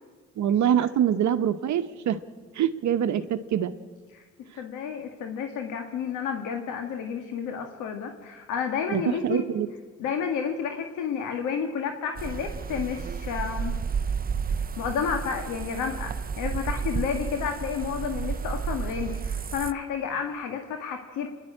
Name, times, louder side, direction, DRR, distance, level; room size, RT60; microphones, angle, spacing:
voice 1, 0.4-2.2 2.6-3.2 3.5-3.7 8.9-9.7, right 9 dB, 70° right, 9 dB, 1.0 m, -24 dB
voice 2, 4.6-9.4 10.0-13.7 14.6-21.3, left 7 dB, 90° left, 4 dB, 1.7 m, -31 dB
open field september, 12.2-19.7, right 6 dB, 30° right, 0.7 m, -31 dB
28.0 x 11.0 x 8.8 m, 1.4 s
cardioid pair, 90°, 30 cm